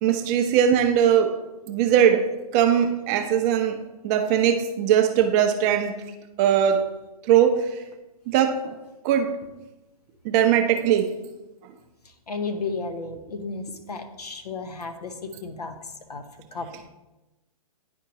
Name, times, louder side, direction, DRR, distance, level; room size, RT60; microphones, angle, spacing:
voice 1, 0.0-1.3 1.7-2.3 2.5-3.8 4.0-5.9 6.4-6.9 7.3-7.8 8.3-8.8 9.0-9.4 10.2-11.1, right 9 dB, 25° right, 6 dB, 0.5 m, -20 dB
voice 2, 12.3-15.7 16.1-16.2 16.5-16.7, left 4 dB, 85° left, 7 dB, 0.9 m, -33 dB
10.0 x 4.4 x 2.8 m, 1.0 s
hypercardioid pair, 135°, 20 cm